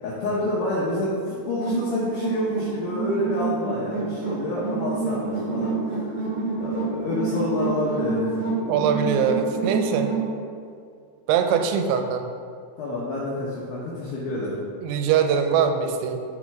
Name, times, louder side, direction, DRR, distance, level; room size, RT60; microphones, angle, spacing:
voice 1, 0.0-6.2 6.6-8.2 12.8-14.5, left 1 dB, 75° left, -6 dB, 2.3 m, -28 dB
sound 1, 1.6-10.3, right 4 dB, 65° right, 1.9 m, -28 dB
voice 2, 8.7-10.1 11.3-12.3 14.8-16.2, right 7 dB, 85° right, 6 dB, 2.9 m, -22 dB
7.9 x 6.4 x 3.5 m, 2.2 s
omnidirectional pair, 5.3 m